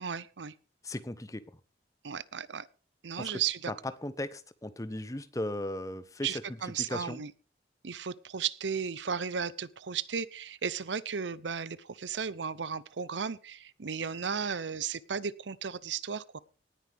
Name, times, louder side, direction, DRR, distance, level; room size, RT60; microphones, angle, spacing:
voice 1, 0.0-0.5 2.0-2.7 3.0-3.7 6.2-7.3 7.8-16.4, right 7 dB, 85° right, 18 dB, 0.7 m, -35 dB
voice 2, 0.8-1.4 3.2-3.4 3.7-7.2, left 1 dB, 20° left, 14 dB, 0.8 m, -37 dB
18.5 x 9.8 x 3.5 m, 0.35 s
head